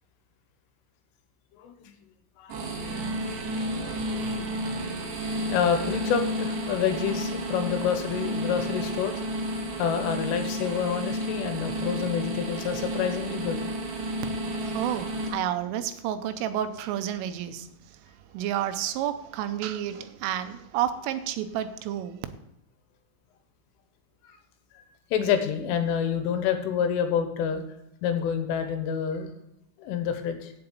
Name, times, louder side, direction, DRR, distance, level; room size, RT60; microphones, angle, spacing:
voice 1, 1.6-1.9 2.4-2.6 3.6-4.3 4.8-4.9 5.5-9.2 9.8-13.6 24.3-24.4 24.8-24.9 25.1-27.6 28.0-29.3 29.8-30.5, left 8 dB, 80° left, 3.5 m, -28 dB
sound 1, 2.5-15.3, right 1 dB, 70° right, 4.2 m, -31 dB
voice 2, 14.6-17.7 18.3-22.3, right 11 dB, 85° right, 3.2 m, -30 dB
7.9 x 7.6 x 8.4 m
omnidirectional pair, 5.8 m